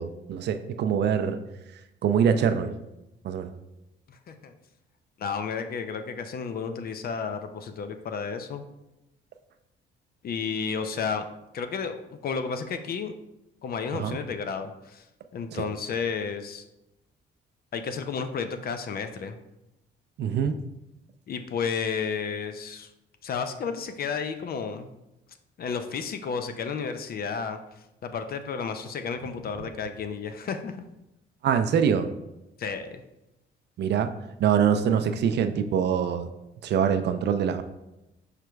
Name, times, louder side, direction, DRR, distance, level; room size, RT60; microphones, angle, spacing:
voice 1, 0.0-1.4 2.0-2.7 3.2-3.5 13.9-14.2 15.5-15.6 20.2-20.6 31.4-32.1 33.8-34.1 34.4-36.3 36.6-37.6, right 7 dB, 60° right, 9 dB, 0.4 m, -24 dB
voice 2, 4.1-4.5 5.2-8.6 10.2-11.2 11.5-13.1 13.6-15.0 15.3-16.6 17.7-19.4 21.3-22.9 23.2-24.9 25.6-27.6 28.0-30.8 32.6-33.0, left 6 dB, 50° left, 8 dB, 0.4 m, -32 dB
4.9 x 4.6 x 2.2 m, 0.91 s
cardioid pair, 90°, 20 cm